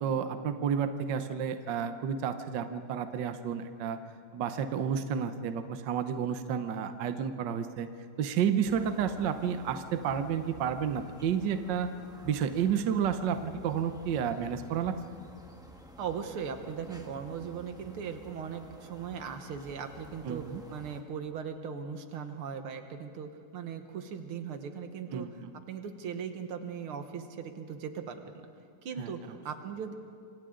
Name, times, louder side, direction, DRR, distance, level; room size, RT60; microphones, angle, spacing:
voice 1, 0.0-4.0 4.3-7.9 8.2-11.9 12.2-15.0 20.2-20.6 25.1-25.5 29.0-29.4, right 7 dB, 65° right, 8 dB, 1.4 m, -31 dB
sound 1, 8.6-21.0, right 1 dB, ahead, 1.2 m, -52 dB
voice 2, 16.0-28.5 28.8-29.9, right 6 dB, 80° right, 7 dB, 2.1 m, -39 dB
27.0 x 25.5 x 3.8 m, 2.3 s
omnidirectional pair, 2.4 m